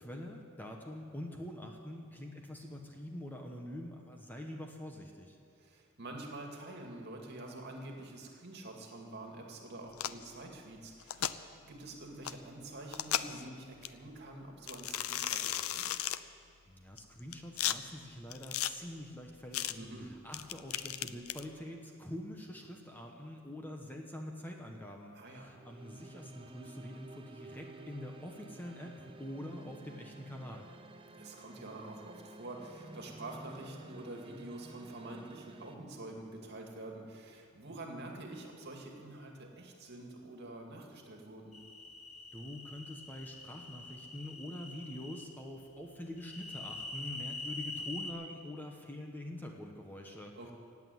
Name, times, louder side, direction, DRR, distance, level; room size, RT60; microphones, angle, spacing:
voice 1, 0.0-5.4 16.7-30.7 42.3-50.3, left 1 dB, 10° left, 1 dB, 1.1 m, -45 dB
voice 2, 5.6-11.3 11.6-16.0 19.8-20.1 25.1-25.5 31.2-41.6 50.4-50.5, right 2 dB, 50° right, 1 dB, 2.3 m, -47 dB
sound 1, 9.9-10.2 11.0-11.3 12.2-12.3 12.9-13.4 13.8-13.9 14.7-16.2 17.0-17.8 18.3-18.7 19.5-19.7 20.3-21.4, left 12 dB, 85° left, 0.5 m, -35 dB
sound 2, 25.5-35.7, right 2 dB, 25° right, 0.7 m, -52 dB
sound 3, 41.5-45.2 46.2-48.1, left 2 dB, 35° left, 1.4 m, -44 dB
16.5 x 8.4 x 9.4 m, 2.3 s
head